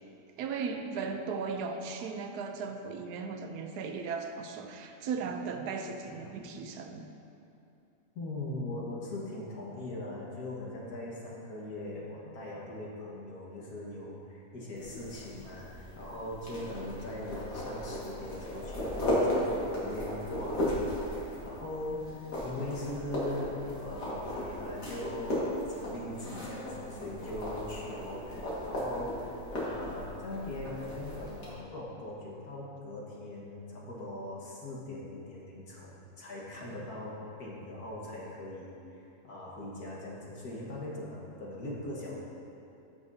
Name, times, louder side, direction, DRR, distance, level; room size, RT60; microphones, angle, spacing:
voice 1, 0.4-7.1, right 5 dB, 80° right, 5 dB, 1.2 m, -37 dB
voice 2, 8.2-42.2, left 1 dB, 70° left, -5 dB, 2.0 m, -41 dB
sound 1, 14.8-31.5, left 1 dB, 85° left, 2.4 m, -36 dB
14.0 x 6.1 x 2.7 m, 2.8 s
omnidirectional pair, 1.7 m